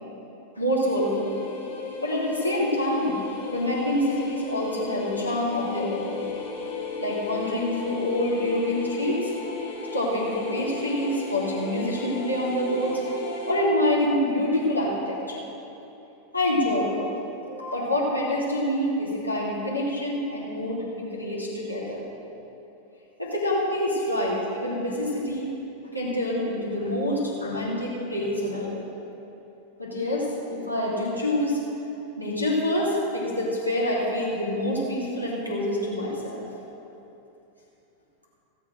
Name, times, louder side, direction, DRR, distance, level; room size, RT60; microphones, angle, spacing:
voice 1, 0.6-1.4 2.0-3.2 3.5-6.2 7.0-9.3 9.9-13.0 13.5-15.4 16.3-17.1 17.5-22.0 23.2-25.5 25.9-28.8 29.8-31.6 32.2-36.4, left 1 dB, 85° left, -5 dB, 2.9 m, -26 dB
sound 1, 0.8-13.5, left 4 dB, 45° left, 3.4 m, -35 dB
16.5 x 7.3 x 6.4 m, 2.9 s
figure-of-eight pair, 90°, 0 cm